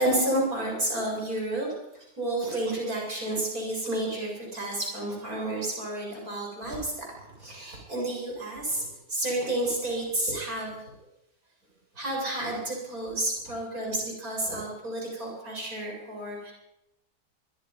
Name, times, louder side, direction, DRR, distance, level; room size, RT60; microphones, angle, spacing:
voice 1, 0.0-1.7 1.9-10.8 11.9-16.5, right 1 dB, 55° right, -1 dB, 8.0 m, -30 dB
24.5 x 23.5 x 5.6 m, 0.85 s
omnidirectional pair, 1.8 m